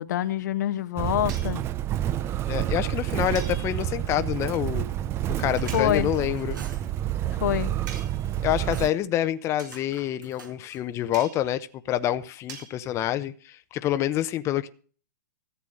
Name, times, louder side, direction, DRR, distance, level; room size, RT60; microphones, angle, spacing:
voice 1, 0.0-1.6 5.7-6.1 7.4-7.7, left 12 dB, 65° left, 0.8 m, -26 dB
Motor vehicle (road), 1.0-8.9, right 12 dB, 25° right, 0.5 m, -29 dB
sound 1, 1.3-1.6 3.3-4.1 5.7-6.0 7.9-8.4 9.6-9.8 11.1-11.6 12.5-12.7, right 6 dB, 65° right, 4.2 m, -43 dB
voice 2, 2.5-4.9 5.4-6.6 8.4-14.7, left 12 dB, 25° left, 0.8 m, -27 dB
sound 2, 5.6-6.9 7.4-8.0 8.3-9.0 9.6-10.9, right 4 dB, 85° right, 5.4 m, -48 dB
14.5 x 8.3 x 6.3 m
hypercardioid pair, 130°, 11 cm